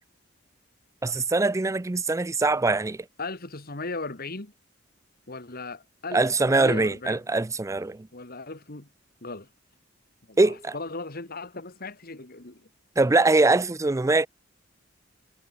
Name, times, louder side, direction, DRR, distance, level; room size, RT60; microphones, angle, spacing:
voice 1, 1.0-3.1 6.1-8.1 10.4-10.7 13.0-14.3, right 3 dB, 15° right, 0.4 m, -22 dB
voice 2, 3.2-4.5 5.3-7.2 8.1-8.9 9.2-9.5 10.3-12.6, left 3 dB, 50° left, 2.6 m, -37 dB
head